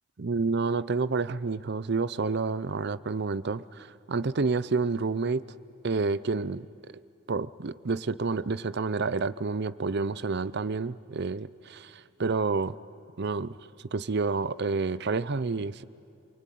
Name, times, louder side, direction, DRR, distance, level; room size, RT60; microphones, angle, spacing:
voice 1, 0.2-5.5 5.8-6.7 7.3-12.8 13.2-13.6 13.9-15.8, right 4 dB, 55° right, 16 dB, 0.6 m, -29 dB
27.5 x 23.5 x 9.3 m, 2.6 s
head